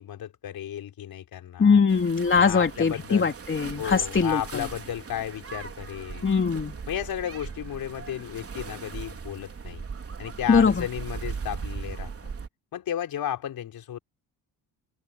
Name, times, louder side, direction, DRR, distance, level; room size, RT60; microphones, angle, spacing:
voice 1, 0.0-1.8 2.3-3.3 3.8-6.3 6.9-9.8 10.2-12.1 12.7-14.0, left 10 dB, 60° left, 4.8 m, -33 dB
voice 2, 1.6-4.6 6.2-6.8 10.5-10.8, left 5 dB, 30° left, 3.4 m, -21 dB
sound 1, 1.9-12.5, right 5 dB, 35° right, 4.2 m, -38 dB
supercardioid pair, 75°, 39 cm